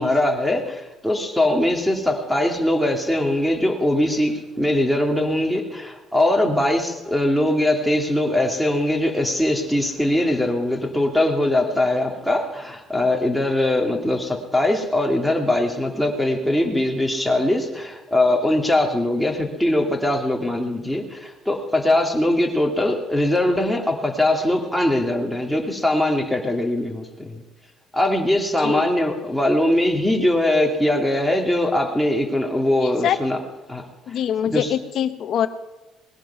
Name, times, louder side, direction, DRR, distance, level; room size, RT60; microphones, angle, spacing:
voice 1, 0.0-27.4 27.9-33.4 33.7-33.8 34.5-34.7, left 1 dB, ahead, 0 dB, 2.4 m, -21 dB
voice 2, 34.1-35.5, left 9 dB, 55° left, 11 dB, 1.0 m, -23 dB
20.5 x 10.5 x 5.7 m, 1.0 s
cardioid pair, 140°, 0 cm